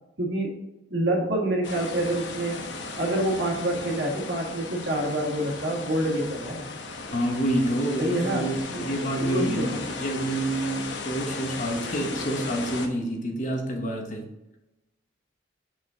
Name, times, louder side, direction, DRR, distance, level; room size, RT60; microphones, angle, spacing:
voice 1, 0.2-0.5 0.9-2.7 3.0-6.6 8.0-9.8, right 1 dB, 65° right, -2 dB, 1.8 m, -27 dB
sound 1, 1.6-12.9, left 3 dB, 70° left, 0.9 m, -36 dB
voice 2, 7.1-14.2, right 1 dB, 40° left, 2 dB, 1.1 m, -28 dB
6.0 x 5.1 x 3.7 m, 0.94 s
head